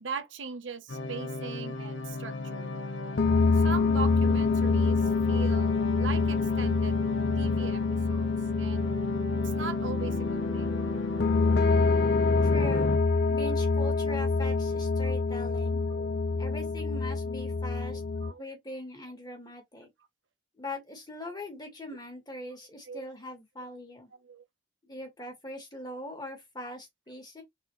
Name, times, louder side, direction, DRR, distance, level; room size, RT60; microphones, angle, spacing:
voice 1, 0.0-2.7 3.5-7.0 7.3-8.9 9.4-10.8 15.9-16.2 17.9-18.4 22.9-23.1 24.2-24.4, right 5 dB, 85° right, 0.9 m, -40 dB
sound 1, 0.9-13.0, left 2 dB, 85° left, 1.0 m, -35 dB
sound 2, 3.2-18.3, left 4 dB, 60° left, 0.5 m, -26 dB
voice 2, 12.4-12.9 13.3-15.8 16.4-18.0 18.3-19.9 20.6-24.1 24.8-27.4, left 1 dB, 20° left, 2.0 m, -41 dB
4.3 x 3.7 x 3.2 m
head